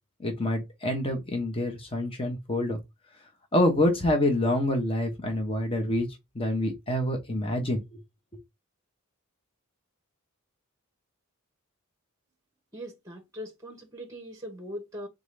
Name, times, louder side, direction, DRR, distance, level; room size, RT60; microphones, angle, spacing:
voice 1, 0.2-2.8 3.5-6.1 6.3-7.8, left 1 dB, 25° left, 0.9 m, -26 dB
voice 2, 12.7-15.1, equal, 15° right, 0.9 m, -40 dB
3.7 x 3.7 x 3.2 m
head